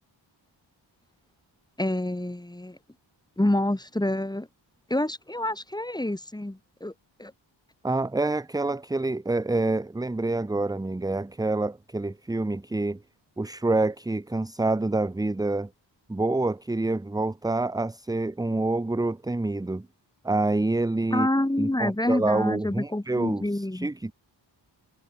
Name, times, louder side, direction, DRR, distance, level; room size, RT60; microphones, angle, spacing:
voice 1, 1.8-2.8 3.4-4.5 4.9-6.9 7.2-7.3 21.1-23.9, left 1 dB, 10° left, 4.1 m, -27 dB
voice 2, 7.8-13.0 13.4-15.7 16.1-19.9 20.2-21.3 21.6-24.1, right 2 dB, 10° right, 0.6 m, -27 dB
wide cardioid pair, 170°, 46 cm